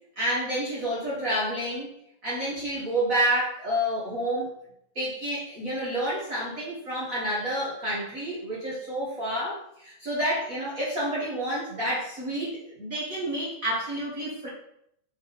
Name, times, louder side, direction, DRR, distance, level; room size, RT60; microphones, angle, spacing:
voice 1, 0.2-1.9 2.2-4.5 4.9-14.5, right 1 dB, 40° right, -7 dB, 1.2 m, -29 dB
6.3 x 3.8 x 4.1 m, 0.74 s
omnidirectional pair, 3.5 m